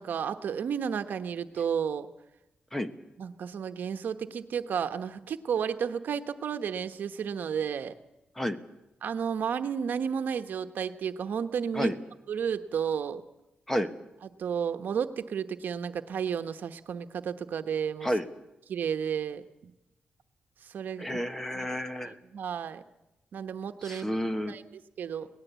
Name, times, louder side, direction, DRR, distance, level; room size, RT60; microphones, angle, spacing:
voice 1, 0.0-2.1 3.2-8.0 9.0-11.9 12.3-13.2 14.4-18.1 18.7-19.7 20.6-21.2 21.5-21.7 22.0-22.8 23.3-24.1 24.5-25.3, right 7 dB, 75° right, 9 dB, 1.1 m, -32 dB
voice 2, 21.0-22.1 23.8-24.5, equal, 10° left, 10 dB, 1.3 m, -30 dB
23.5 x 18.5 x 8.2 m, 0.92 s
wide cardioid pair, 120°, 3 cm